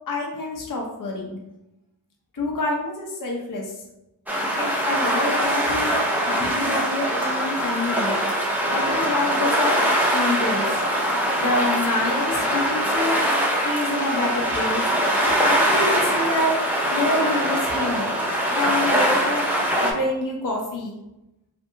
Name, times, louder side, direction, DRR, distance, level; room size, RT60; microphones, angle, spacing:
voice 1, 0.1-1.4 2.3-3.7 4.5-8.2 8.7-10.8 11.3-13.2 13.6-14.9 15.2-18.1 18.5-19.4 19.8-20.9, left 2 dB, 45° left, -1 dB, 0.7 m, -27 dB
sound 1, 4.3-19.9, equal, 5° right, 0.5 m, -22 dB
2.7 x 2.6 x 2.5 m, 0.92 s
cardioid pair, 45°, 44 cm